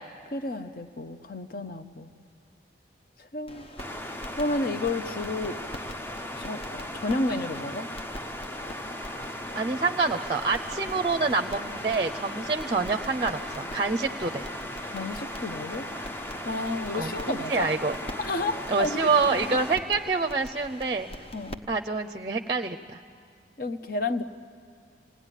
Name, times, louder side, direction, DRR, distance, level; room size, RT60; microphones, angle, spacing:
voice 1, 0.3-2.1 3.2-3.7 4.4-5.6 6.4-7.9 14.9-16.1 16.4-17.7 18.2-19.0 19.3-19.6 21.3-21.6 23.6-24.2, left 2 dB, 55° left, 9 dB, 0.9 m, -31 dB
sound 1, 3.5-21.6, left 1 dB, 35° left, 1.0 m, -45 dB
sound 2, 3.8-19.8, left 1 dB, 10° left, 0.6 m, -37 dB
Wind instrument woodwind instrument, 8.5-20.2, equal, 85° left, 7.7 m, -49 dB
voice 2, 9.5-14.4 16.9-18.0 18.7-21.1 21.7-23.0, right 4 dB, 30° right, 7 dB, 0.6 m, -27 dB
27.5 x 18.0 x 10.0 m, 2.3 s
head